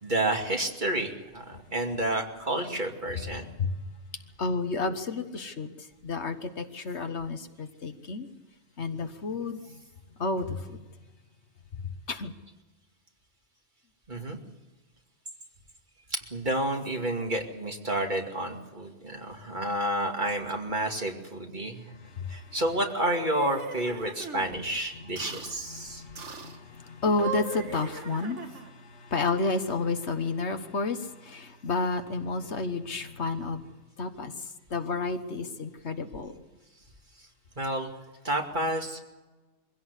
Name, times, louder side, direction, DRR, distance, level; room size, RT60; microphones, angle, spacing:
voice 1, 0.0-3.5 14.1-14.4 16.1-21.9 22.3-26.0 37.6-37.9 38.2-39.0, right 1 dB, 40° right, 2 dB, 2.6 m, -30 dB
voice 2, 4.4-5.7 6.0-8.3 8.8-9.6 10.2-10.8 12.1-12.3 22.2-22.4 25.7-33.6 34.0-34.3 34.7-36.3, left 3 dB, 70° left, 8 dB, 1.7 m, -31 dB
sound 1, 22.8-24.5 25.2-25.6 26.2-26.6 27.0-28.8, right 5 dB, 90° right, 1.9 m, -39 dB
23.5 x 16.5 x 8.3 m, 1.2 s
omnidirectional pair, 1.2 m